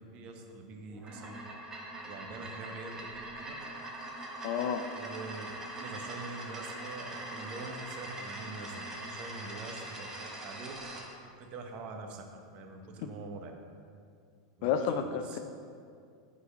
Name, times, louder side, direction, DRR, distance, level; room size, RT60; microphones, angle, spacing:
voice 1, 0.1-1.3 2.0-3.5 4.9-10.7 11.2-12.3 12.5-13.5 14.6-15.4, right 3 dB, 45° right, 4 dB, 0.8 m, -44 dB
sound 1, 0.9-11.1, right 1 dB, 20° right, 1.0 m, -42 dB
voice 2, 4.4-4.9 13.0-13.1 14.6-15.4, left 7 dB, 55° left, 8 dB, 0.4 m, -31 dB
5.4 x 4.0 x 5.5 m, 2.3 s
supercardioid pair, 135°, 3 cm